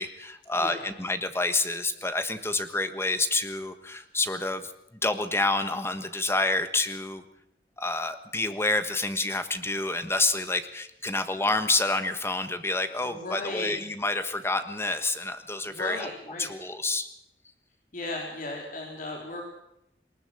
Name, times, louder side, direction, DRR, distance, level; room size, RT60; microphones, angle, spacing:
voice 1, 0.0-4.7 5.0-7.2 7.8-16.1 16.4-17.1, left 2 dB, 15° left, 9 dB, 1.4 m, -28 dB
voice 2, 0.5-0.9 13.0-13.8 15.7-16.5 17.9-19.4, left 2 dB, 50° left, 0 dB, 3.6 m, -36 dB
20.0 x 19.0 x 7.8 m, 0.81 s
head